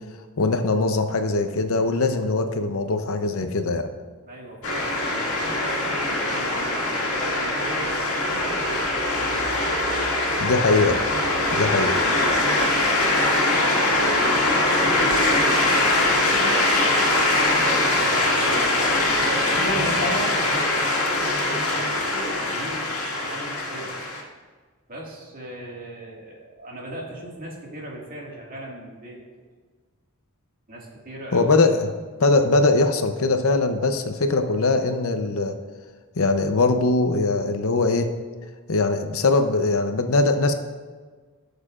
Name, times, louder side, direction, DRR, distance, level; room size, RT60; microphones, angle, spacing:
voice 1, 0.4-3.9 10.4-11.0 11.5-12.0 31.3-31.8 32.2-35.6 36.2-38.1 38.7-40.5, left 3 dB, 70° left, 7 dB, 0.7 m, -21 dB
voice 2, 4.3-9.5 13.8-20.6 21.4-24.1 24.9-29.2 30.7-31.5, right 1 dB, 40° right, -3 dB, 2.0 m, -39 dB
sound 1, 4.6-24.2, left 2 dB, 85° left, 1.9 m, -22 dB
16.5 x 6.5 x 2.5 m, 1.4 s
head